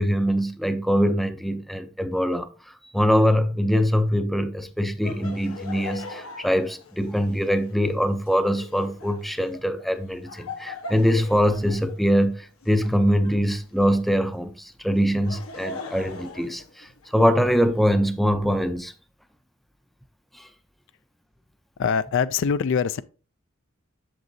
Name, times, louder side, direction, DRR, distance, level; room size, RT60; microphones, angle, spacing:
voice 1, 0.0-2.5 2.9-18.9 20.3-20.5, equal, ahead, 0.5 m, -23 dB
Laughter, 5.0-14.1 15.0-17.3, left 3 dB, 80° left, 1.1 m, -41 dB
voice 2, 21.8-23.0, left 6 dB, 60° left, 0.4 m, -23 dB
7.8 x 6.9 x 2.7 m
head